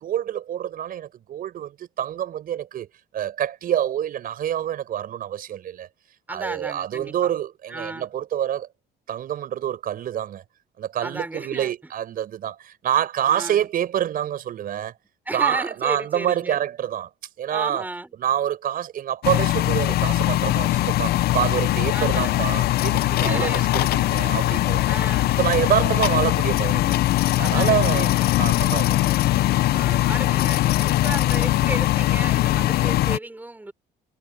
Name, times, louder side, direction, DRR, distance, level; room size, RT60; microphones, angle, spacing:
voice 1, 0.0-2.9 3.1-5.9 6.3-8.7 9.1-10.4 10.8-14.9 15.3-17.1 17.4-17.9 18.2-24.8 25.4-27.0 27.4-29.2, right 10 dB, 60° right, 5.2 m, -26 dB
voice 2, 6.3-7.3 7.7-8.1 11.0-11.9 13.3-13.7 15.3-16.6 17.5-18.1 21.9-22.4 23.3-23.7 24.8-25.4 27.4-28.3 29.7-33.7, right 2 dB, 10° right, 4.6 m, -34 dB
sound 1, 19.2-33.2, left 15 dB, 70° left, 0.6 m, -21 dB
cardioid pair, 110°, 17 cm